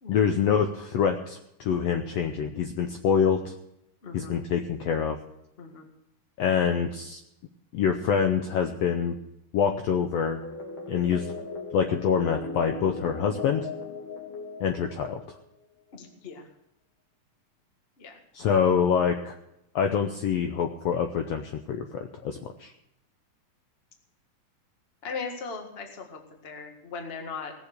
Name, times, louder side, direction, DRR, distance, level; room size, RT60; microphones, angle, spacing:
voice 1, 0.1-3.5 4.1-5.2 6.4-7.2 7.7-9.2 9.5-10.4 10.9-11.3 11.7-13.7 14.6-15.2 18.3-19.4 19.7-22.7, left 7 dB, 85° left, 5 dB, 1.4 m, -25 dB
voice 2, 4.0-4.4 5.6-5.9 15.9-16.5 18.0-18.5 25.0-27.5, left 5 dB, 35° left, 4 dB, 1.0 m, -39 dB
sound 1, 10.2-15.4, left 3 dB, 50° left, 1.7 m, -38 dB
18.5 x 7.1 x 6.6 m, 0.81 s
omnidirectional pair, 4.0 m